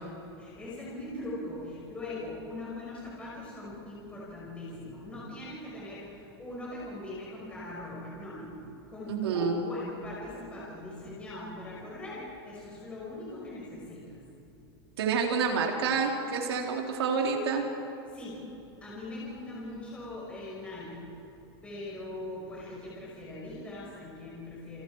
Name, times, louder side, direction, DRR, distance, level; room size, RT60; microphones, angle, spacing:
voice 1, 0.3-14.2 14.6-14.7 18.1-18.5 18.8-21.0 21.6-24.8, left 1 dB, 10° left, -6 dB, 5.8 m, -41 dB
voice 2, 9.1-9.6 15.0-17.7, right 5 dB, 80° right, 0 dB, 4.4 m, -28 dB
30.0 x 29.0 x 5.0 m, 3.0 s
supercardioid pair, 175°, 13 cm